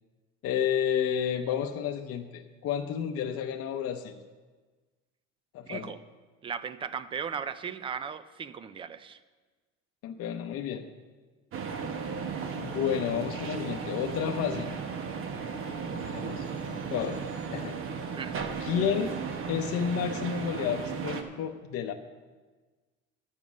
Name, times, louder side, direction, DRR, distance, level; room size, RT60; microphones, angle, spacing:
voice 1, 0.4-4.1 5.5-5.9 10.0-10.9 12.6-14.7 16.1-16.5 16.9-17.8 18.6-19.2 19.5-21.9, left 8 dB, 50° left, 4 dB, 0.7 m, -31 dB
voice 2, 5.7-6.0 6.4-9.2 18.1-18.4, right 7 dB, 20° right, 14 dB, 0.3 m, -37 dB
sound 1, 11.5-21.2, right 6 dB, 45° right, 1.0 m, -35 dB
12.0 x 7.2 x 6.1 m, 1.3 s
cardioid pair, 160°, 29 cm